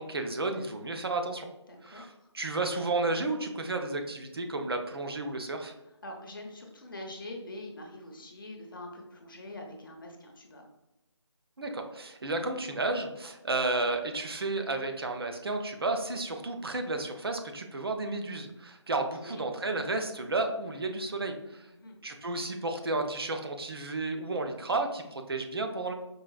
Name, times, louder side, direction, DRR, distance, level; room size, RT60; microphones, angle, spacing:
voice 1, 0.0-1.5 1.8-5.7 11.6-21.7 22.0-25.9, right 2 dB, 55° right, 4 dB, 0.5 m, -32 dB
voice 2, 1.7-2.3 6.0-10.6 19.2-19.4 21.8-22.0, left 1 dB, 45° left, 2 dB, 0.7 m, -44 dB
4.7 x 2.4 x 2.3 m, 0.94 s
figure-of-eight pair, 155°, 15 cm